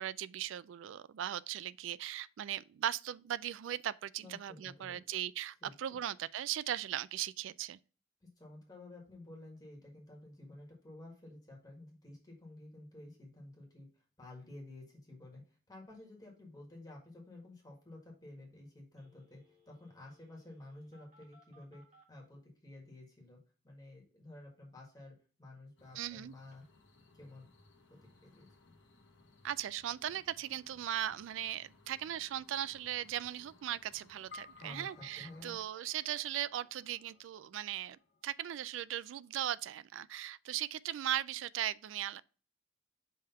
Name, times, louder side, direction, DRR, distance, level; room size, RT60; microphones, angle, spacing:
voice 1, 0.0-7.8 26.0-26.3 29.4-42.2, right 11 dB, 80° right, 0.3 m, -38 dB
voice 2, 4.2-5.0 5.6-6.0 8.2-13.9 14.2-21.8 22.1-23.4 23.6-26.6 27.1-27.5 27.9-28.5 34.6-35.5, left 2 dB, 20° left, 1.7 m, -52 dB
Telephone, 19.0-22.1 26.5-34.7, left 3 dB, 40° right, 1.7 m, -70 dB
sound 1, 25.8-35.6, left 2 dB, 80° left, 1.0 m, -65 dB
sound 2, 34.3-38.9, left 4 dB, 50° left, 0.6 m, -58 dB
5.5 x 3.5 x 5.5 m
head